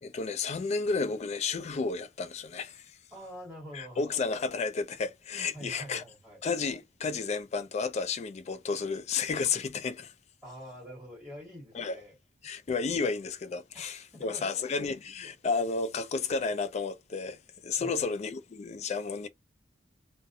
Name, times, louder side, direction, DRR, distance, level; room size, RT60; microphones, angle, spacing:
voice 1, 0.0-3.0 3.7-6.0 6.4-10.1 11.7-12.0 12.4-17.4 17.6-19.3, left 4 dB, 40° left, 0.3 m, -32 dB
voice 2, 3.1-4.2 5.5-6.4 10.4-12.1 13.7-14.4 17.8-18.0, equal, 5° right, 1.5 m, -46 dB
2.4 x 2.1 x 2.6 m
head